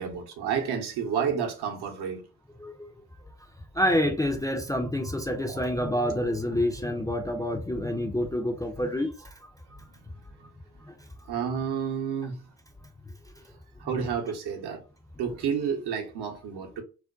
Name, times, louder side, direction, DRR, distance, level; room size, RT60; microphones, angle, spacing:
voice 1, 0.0-2.2 5.4-5.7 9.7-9.9 10.4-10.5 11.3-12.5 13.8-14.8 15.2-16.8, right 7 dB, 65° right, 0.8 m, -30 dB
voice 2, 3.8-9.1, left 1 dB, 10° left, 0.4 m, -27 dB
2.5 x 2.1 x 2.3 m
supercardioid pair, 55°, 43 cm